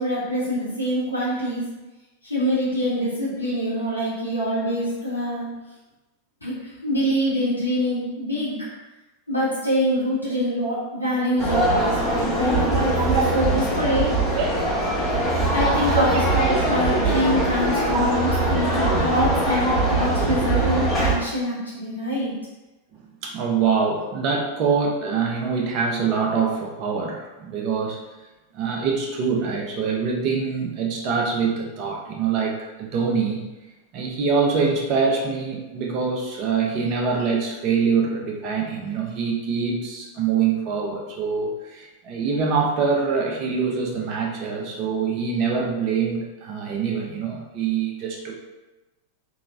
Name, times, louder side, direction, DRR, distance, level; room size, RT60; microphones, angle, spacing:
voice 1, 0.0-1.6 2.2-5.5 6.4-6.5 6.8-8.5 9.3-14.1 15.5-16.1 16.5-22.3, equal, 85° left, -9 dB, 1.2 m, -25 dB
sound 1, 11.4-21.1, right 1 dB, 15° left, 1.0 m, -22 dB
voice 2, 12.8-13.5 14.3-15.5 15.9-16.7 17.9-18.2 19.5-19.6 23.2-28.0 28.5-33.4 33.9-48.3, right 5 dB, 40° right, 0 dB, 0.7 m, -25 dB
3.4 x 3.0 x 2.5 m, 1.1 s
figure-of-eight pair, 90°, 0 cm